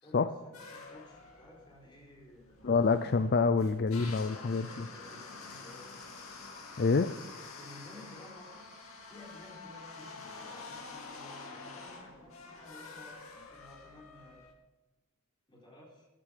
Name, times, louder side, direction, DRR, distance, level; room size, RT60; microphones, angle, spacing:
voice 1, 0.0-2.9 4.2-6.0 6.9-8.5 9.1-14.4 15.5-16.1, left 1 dB, 20° left, -3 dB, 4.1 m, -54 dB
sound 1, 0.5-14.5, left 3 dB, 80° left, 2.4 m, -48 dB
voice 2, 2.6-4.8 6.8-7.1, left 4 dB, 50° left, 11 dB, 0.4 m, -27 dB
14.5 x 10.5 x 5.2 m, 1.1 s
head